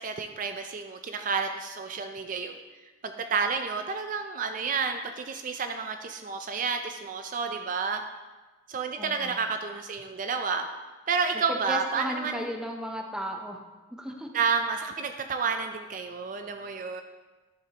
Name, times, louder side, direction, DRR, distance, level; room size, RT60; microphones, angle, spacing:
voice 1, 0.0-2.6 3.0-8.0 8.7-10.7 11.1-12.4 14.3-17.0, right 5 dB, 45° right, 6 dB, 0.4 m, -30 dB
voice 2, 9.0-9.4 11.7-13.6 13.9-14.3, equal, 5° right, 2 dB, 0.7 m, -34 dB
11.0 x 6.7 x 2.9 m, 1.2 s
head